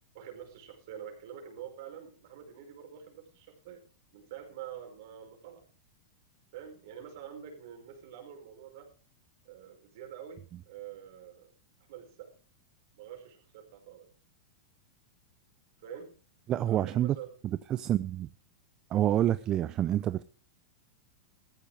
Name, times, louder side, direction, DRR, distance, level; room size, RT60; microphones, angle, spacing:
voice 1, 0.1-3.8 4.1-5.6 6.5-8.9 9.4-11.5 11.9-12.3 13.0-14.1 15.8-16.1 16.7-17.3, right 9 dB, 60° right, 3 dB, 5.1 m, -46 dB
voice 2, 16.5-17.2 17.7-18.3 18.9-20.2, right 12 dB, 35° right, 15 dB, 0.6 m, -27 dB
16.5 x 14.0 x 3.4 m, 0.37 s
hypercardioid pair, 105°, 2 cm